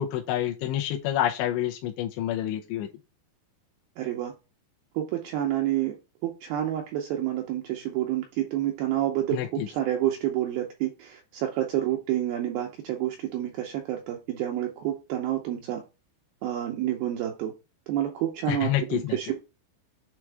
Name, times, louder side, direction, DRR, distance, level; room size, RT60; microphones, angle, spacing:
voice 1, 0.0-2.9 9.3-9.7 18.5-19.2, left 12 dB, 85° left, 1 dB, 3.0 m, -28 dB
voice 2, 4.0-4.3 5.0-6.0 6.2-15.8 16.4-17.5 17.9-19.3, right 12 dB, 90° right, 2 dB, 2.2 m, -29 dB
7.2 x 3.3 x 4.6 m, 0.28 s
omnidirectional pair, 5.1 m